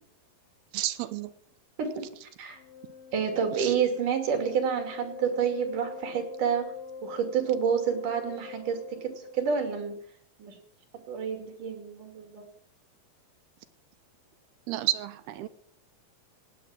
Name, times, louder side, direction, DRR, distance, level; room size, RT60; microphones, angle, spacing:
voice 1, 0.7-1.3 3.5-3.7 14.7-15.5, right 14 dB, 80° right, 12 dB, 2.6 m, -31 dB
Wind instrument woodwind instrument, 2.5-9.6, left 6 dB, 65° left, 2.9 m, -44 dB
voice 2, 3.1-6.7 7.0-10.0 10.4-10.6 11.1-12.4, right 7 dB, 55° right, 5 dB, 4.0 m, -29 dB
18.0 x 9.3 x 7.6 m, 0.64 s
omnidirectional pair, 4.8 m